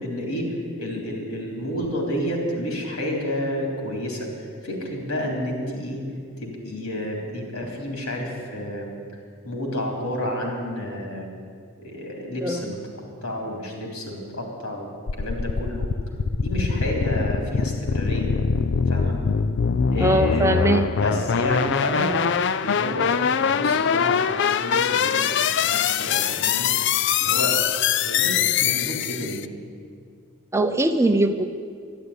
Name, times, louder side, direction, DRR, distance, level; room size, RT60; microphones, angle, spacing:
voice 1, 0.0-4.3 4.6-6.0 6.4-8.9 9.4-11.4 11.8-12.8 13.2-14.9 15.2-15.9 16.4-18.3 18.9-19.2 19.9-20.7 21.0-22.2 22.6-25.3 25.6-26.7 27.2-27.6 28.0-29.4, left 1 dB, 85° left, 1 dB, 3.8 m, -30 dB
sound 1, 15.1-29.5, left 7 dB, 55° left, 0.4 m, -23 dB
voice 2, 20.0-20.9 30.5-31.5, right 1 dB, 15° right, 7 dB, 0.6 m, -21 dB
12.0 x 11.5 x 9.8 m, 2.1 s
head